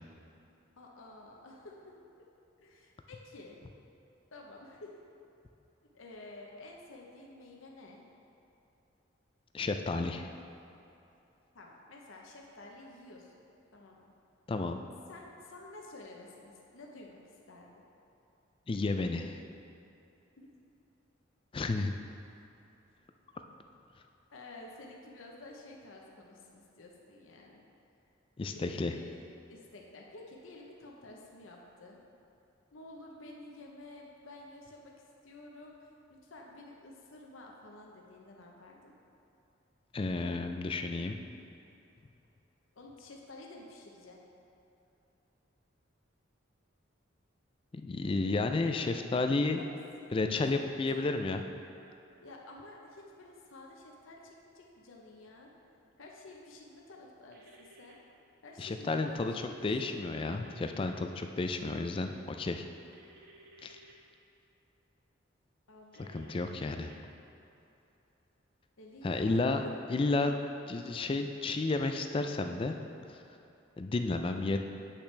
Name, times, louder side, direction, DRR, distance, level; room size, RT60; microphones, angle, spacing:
voice 1, 0.8-1.9 2.6-3.6 4.3-4.9 5.9-8.0 11.5-13.4 13.7-14.2 15.1-17.7 20.4-20.5 24.3-27.6 28.5-29.2 29.5-32.0 32.7-34.9 35.2-35.8 36.1-38.9 42.8-44.2 49.5-49.7 50.5-51.1 52.2-55.5 56.0-58.0 58.4-59.7 65.7-66.9 68.8-69.4, left 2 dB, 85° left, -1 dB, 0.8 m, -51 dB
voice 2, 9.5-10.3 14.5-14.8 18.7-19.4 21.5-21.9 28.4-28.9 39.9-41.2 47.7-49.6 50.1-51.4 58.6-62.6 63.6-63.8 66.0-66.9 69.0-69.6 69.9-70.3 70.7-72.8 73.1-73.2 73.8-74.6, left 3 dB, 25° left, 6 dB, 0.3 m, -32 dB
sound 1, 57.3-57.9 59.9-60.9 62.9-63.9 65.9-67.0, right 2 dB, 55° right, 0.8 m, -57 dB
8.3 x 5.8 x 3.3 m, 2.8 s
head